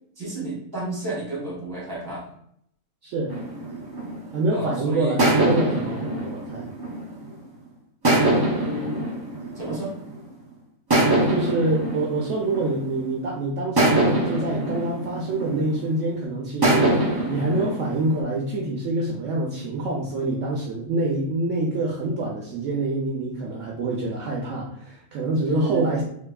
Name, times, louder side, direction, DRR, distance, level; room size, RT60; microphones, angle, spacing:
voice 1, 0.2-2.3 4.5-5.2 8.5-9.0 9.5-9.9 25.4-26.0, right 2 dB, 15° right, -5 dB, 1.5 m, -31 dB
voice 2, 3.0-3.4 4.3-6.7 11.3-26.0, right 2 dB, 65° right, -2 dB, 0.9 m, -26 dB
sound 1, 3.3-4.6 5.2-7.4 8.0-10.2 10.9-13.2 13.8-16.0 16.6-18.2, right 1 dB, 30° right, 0.4 m, -24 dB
3.4 x 3.4 x 2.3 m, 0.69 s
omnidirectional pair, 1.5 m